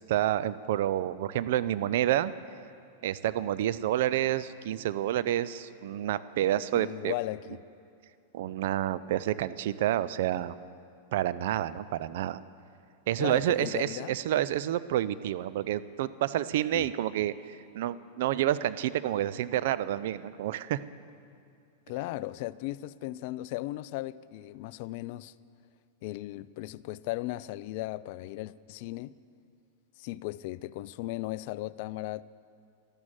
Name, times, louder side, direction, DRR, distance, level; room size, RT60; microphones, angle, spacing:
voice 1, 0.1-2.3 3.0-7.1 8.3-10.5 11.1-12.4 13.1-20.8, right 12 dB, 60° right, 15 dB, 0.5 m, -29 dB
voice 2, 6.7-7.6 13.2-14.2 16.7-16.9 21.9-25.3 26.0-29.2 30.0-32.2, left 17 dB, 55° left, 19 dB, 0.4 m, -36 dB
12.5 x 12.0 x 7.5 m, 2.4 s
hypercardioid pair, 100°, 0 cm